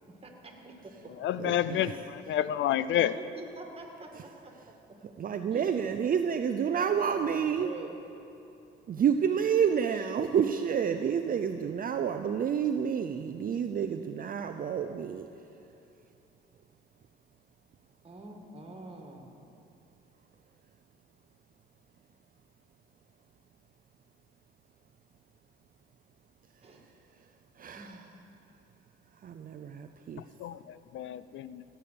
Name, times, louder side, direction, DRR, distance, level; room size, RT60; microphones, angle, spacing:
voice 1, 0.1-0.7 1.7-1.9 3.0-4.5 5.5-5.8 6.7-8.0 18.0-19.5 26.6-26.8 27.7-28.1, right 2 dB, 30° right, 2 dB, 2.0 m, -45 dB
voice 2, 1.2-1.9 2.3-3.1 30.4-30.6 30.9-31.6, left 11 dB, 70° left, 15 dB, 0.4 m, -28 dB
voice 3, 5.2-7.7 8.9-15.3 27.6-27.9 29.2-30.2, right 7 dB, 45° right, 7 dB, 0.5 m, -29 dB
16.5 x 7.0 x 6.8 m, 2.8 s
cardioid pair, 90°, 20 cm